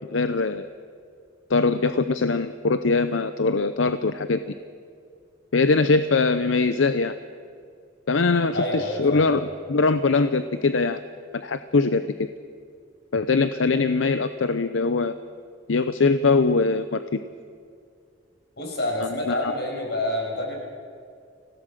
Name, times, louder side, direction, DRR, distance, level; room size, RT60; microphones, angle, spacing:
voice 1, 0.1-0.7 1.5-4.4 5.5-7.1 8.1-9.4 9.7-11.0 11.3-12.3 13.1-15.1 15.7-17.2 19.0-19.5, left 3 dB, 85° left, 11 dB, 0.7 m, -22 dB
voice 2, 8.5-9.3 18.6-20.5, left 1 dB, 60° left, 0 dB, 6.2 m, -27 dB
25.5 x 17.0 x 6.7 m, 2.3 s
head